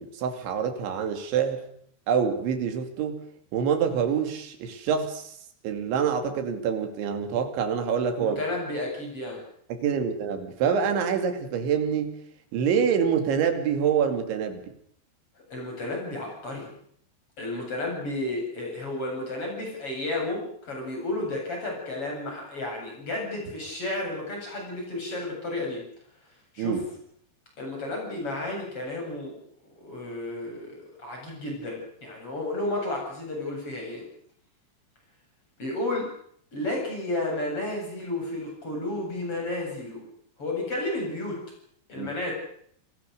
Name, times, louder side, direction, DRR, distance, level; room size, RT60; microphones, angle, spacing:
voice 1, 0.0-1.6 2.1-3.2 3.5-5.4 5.6-8.4 9.7-12.2 12.5-14.7 26.6-26.8 42.0-42.1, right 7 dB, 75° right, 6 dB, 4.9 m, -26 dB
voice 2, 8.2-9.4 15.4-16.8 17.4-25.8 26.5-26.8 27.6-34.1 35.6-36.1 36.5-40.1 40.4-41.4 41.9-42.3, left 2 dB, 30° left, 1 dB, 8.7 m, -32 dB
28.5 x 20.0 x 6.7 m, 0.65 s
omnidirectional pair, 5.5 m